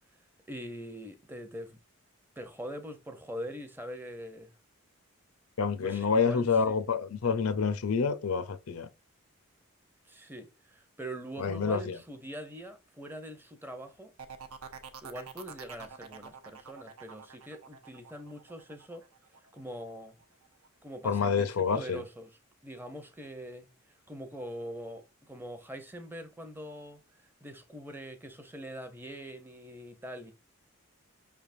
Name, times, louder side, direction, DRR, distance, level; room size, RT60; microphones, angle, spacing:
voice 1, 0.5-1.8 2.4-4.5 5.8-6.8 10.1-14.1 15.0-19.0 19.5-20.2 20.8-22.3 22.6-27.0 27.4-30.3, equal, 10° right, 0.6 m, -43 dB
voice 2, 5.6-8.9 11.4-12.0 21.0-22.0, left 5 dB, 85° left, 0.6 m, -28 dB
sound 1, 14.2-19.8 20.2-20.7, right 6 dB, 85° right, 0.8 m, -47 dB
5.3 x 3.4 x 2.5 m
head